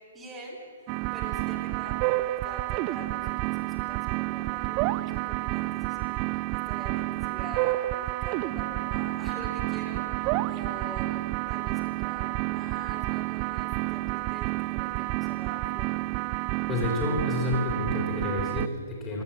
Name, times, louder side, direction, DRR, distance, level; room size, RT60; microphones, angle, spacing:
voice 1, 0.1-16.1, right 2 dB, 15° right, -5 dB, 2.6 m, -45 dB
sound 1, 0.9-18.7, right 19 dB, 30° right, 0.3 m, -30 dB
voice 2, 16.7-19.2, left 2 dB, 20° left, -3 dB, 3.4 m, -29 dB
16.5 x 11.5 x 7.2 m, 2.2 s
figure-of-eight pair, 120°, 0 cm